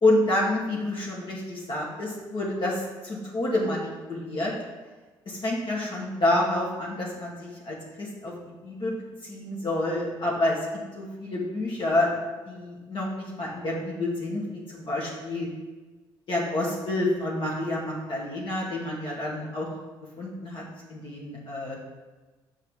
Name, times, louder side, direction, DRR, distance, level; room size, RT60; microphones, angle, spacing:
voice 1, 0.0-4.5 5.3-9.0 9.2-10.6 10.9-12.1 12.5-15.5 16.3-19.7 20.2-20.6 20.9-21.8, left 1 dB, 55° left, -4 dB, 2.2 m, -28 dB
6.3 x 5.2 x 5.0 m, 1.2 s
supercardioid pair, 65°, 10 cm